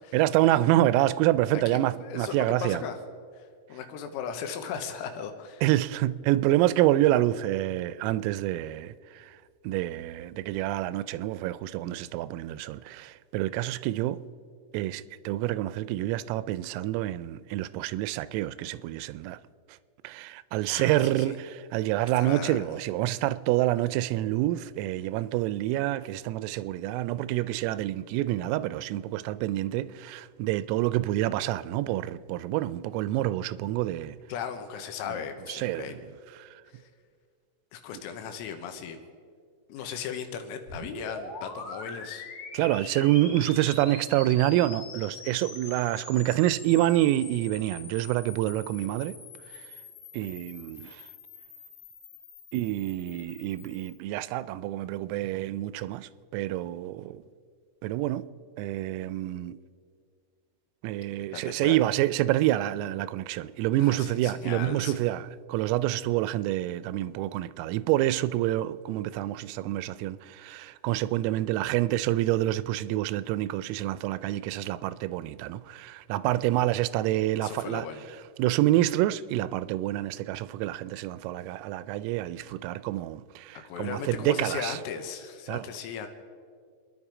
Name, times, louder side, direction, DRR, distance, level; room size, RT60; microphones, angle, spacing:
voice 1, 0.1-2.8 5.6-9.4 9.6-14.2 14.7-19.4 20.0-34.2 35.5-36.0 36.4-36.5 42.5-49.2 50.1-51.0 52.5-57.2 57.8-58.3 58.6-59.6 60.8-77.9 78.4-84.8 85.5-85.7, right 15 dB, 90° right, 3.2 m, -27 dB
voice 2, 1.7-3.0 3.4-3.5 3.7-5.6 20.7-21.4 22.2-22.7 34.3-36.0 36.7-36.8 37.7-39.0 39.7-42.3 61.3-61.8 63.8-65.1 77.4-78.1 83.5-86.1, left 7 dB, 85° left, 3.9 m, -37 dB
sound 1, 40.7-54.0, left 4 dB, 55° left, 2.9 m, -44 dB
27.5 x 10.5 x 4.9 m
omnidirectional pair, 5.9 m